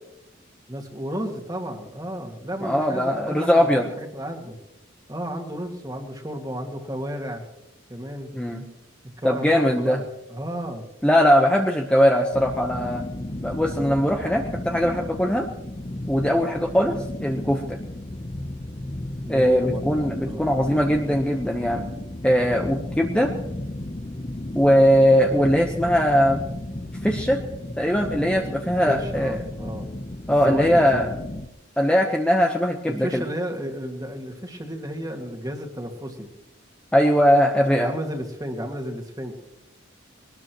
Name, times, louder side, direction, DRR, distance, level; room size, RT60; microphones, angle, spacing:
voice 1, 0.7-4.6 5.1-7.5 7.9-8.3 9.2-10.0 10.3-10.9 19.2-19.9 20.3-20.5 28.6-29.9 30.3-31.0 32.9-36.3 37.8-39.3, equal, 20° right, 3 dB, 2.0 m, -32 dB
voice 2, 2.6-3.9 8.3-8.6 9.2-10.0 11.0-13.0 13.4-15.5 16.1-17.8 19.3-21.9 22.2-23.3 24.5-26.4 27.0-27.4 27.8-29.4 30.3-31.1 31.8-33.2 36.9-37.9, equal, 5° left, 1 dB, 1.0 m, -20 dB
sound 1, 12.3-31.5, left 1 dB, 30° left, 0.8 m, -34 dB
22.5 x 19.5 x 3.1 m, 0.86 s
head